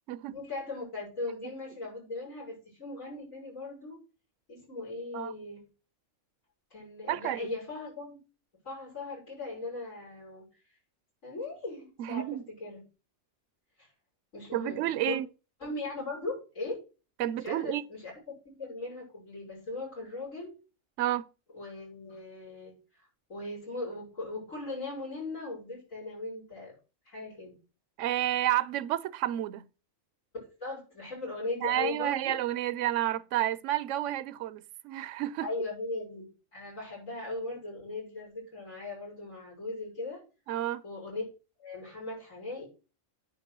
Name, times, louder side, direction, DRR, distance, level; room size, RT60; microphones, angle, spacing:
voice 1, 0.3-4.0 4.5-5.7 6.7-8.2 8.6-10.5 11.2-12.8 13.8-13.9 14.3-15.2 15.6-16.8 17.4-18.1 18.6-20.5 21.5-26.7 27.0-27.5 30.3-32.4 35.4-40.2 40.8-41.2 41.6-42.7, left 2 dB, 90° left, 6.5 m, -39 dB
voice 2, 7.1-7.4 12.0-12.4 14.5-15.3 17.2-17.8 21.0-21.2 28.0-29.6 31.6-35.5 40.5-40.8, right 13 dB, 75° right, 0.9 m, -30 dB
9.6 x 4.9 x 6.0 m
omnidirectional pair, 1.3 m